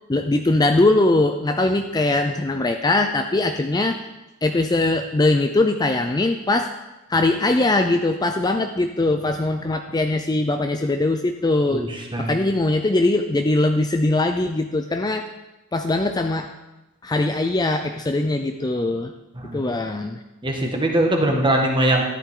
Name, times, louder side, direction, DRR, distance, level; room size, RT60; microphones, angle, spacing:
voice 1, 0.1-4.0 4.4-6.7 7.1-15.3 15.7-16.5 17.0-19.1 19.5-20.2, left 2 dB, 20° left, 5 dB, 0.5 m, -21 dB
voice 2, 20.4-22.0, right 1 dB, 25° right, 1 dB, 1.7 m, -21 dB
13.0 x 11.0 x 3.8 m, 1.0 s
head